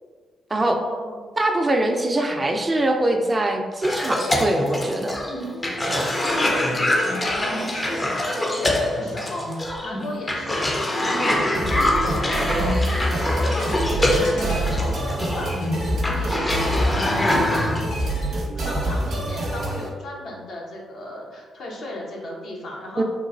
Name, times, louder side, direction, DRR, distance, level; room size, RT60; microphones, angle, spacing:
voice 1, 0.5-1.2 6.1-17.7 18.6-23.0, left 1 dB, 65° left, -2 dB, 0.7 m, -35 dB
voice 2, 1.4-5.2 5.9-6.1 23.0-23.1, right 1 dB, 30° right, 3 dB, 0.4 m, -23 dB
Cough, 3.8-17.8, left 1 dB, 25° left, 0.5 m, -24 dB
sound 1, 11.5-19.9, right 1 dB, 60° right, 0.6 m, -26 dB
sound 2, 13.5-19.6, equal, 80° left, 1.1 m, -39 dB
3.0 x 2.2 x 2.5 m, 1.5 s
supercardioid pair, 50°, 0 cm